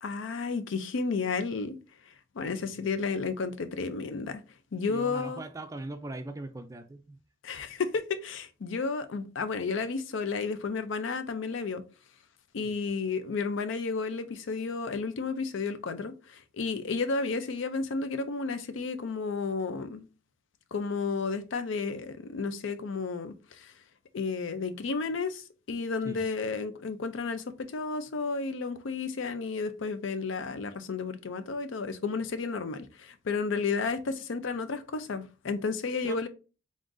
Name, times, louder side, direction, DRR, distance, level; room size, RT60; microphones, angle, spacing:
voice 1, 0.0-1.8 2.4-4.4 4.7-5.4 7.4-11.8 12.5-20.1 20.7-23.7 24.1-36.3, left 4 dB, 75° left, 0.5 m, -32 dB
voice 2, 2.4-2.9 4.9-7.2 12.6-12.9 26.0-26.2 33.5-33.6 36.0-36.3, right 2 dB, 15° right, 0.4 m, -41 dB
3.8 x 3.6 x 2.5 m
head